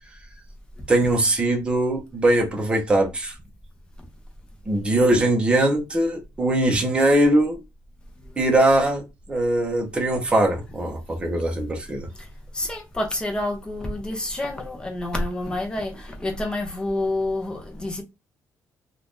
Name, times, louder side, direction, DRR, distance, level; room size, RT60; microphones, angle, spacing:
voice 1, 0.9-3.3 4.7-7.6 8.4-12.1, right 1 dB, 15° right, 0.8 m, -21 dB
voice 2, 12.5-18.0, left 1 dB, 15° left, 0.8 m, -28 dB
2.8 x 2.5 x 3.5 m
cardioid pair, 150°, 6 cm